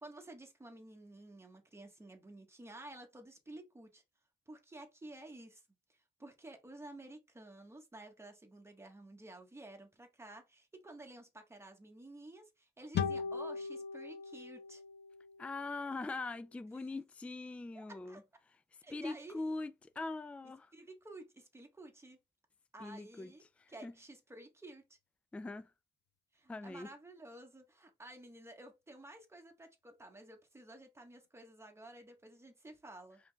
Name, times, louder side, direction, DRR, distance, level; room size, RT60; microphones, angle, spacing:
voice 1, 0.0-4.0 4.5-5.6 5.9-14.8 17.7-18.2 18.8-19.4 20.7-22.2 22.7-24.8 26.3-33.2, right 2 dB, 15° right, 1.3 m, -52 dB
sound 1, 12.9-16.3, left 6 dB, 60° left, 0.7 m, -40 dB
voice 2, 15.4-18.2 18.9-20.7 22.8-23.3 23.6-23.9 25.3-25.7 26.5-26.9, left 3 dB, 5° left, 0.3 m, -42 dB
5.0 x 3.8 x 2.3 m
cardioid pair, 90°, 20 cm